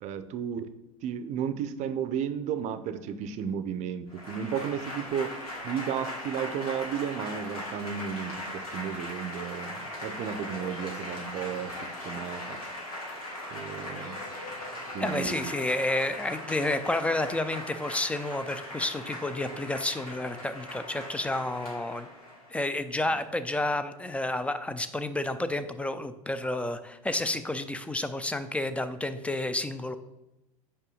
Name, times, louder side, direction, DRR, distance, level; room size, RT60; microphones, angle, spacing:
voice 1, 0.0-0.7 1.0-5.4 5.6-12.6 13.5-14.2 14.9-15.5, right 8 dB, 40° right, 12 dB, 0.6 m, -33 dB
Applause / Crowd, 4.1-22.6, left 1 dB, 90° left, 2.4 m, -39 dB
voice 2, 15.0-22.1 22.5-30.0, left 2 dB, 5° left, 11 dB, 0.5 m, -30 dB
5.5 x 4.9 x 5.4 m, 0.94 s
hypercardioid pair, 85°, 18 cm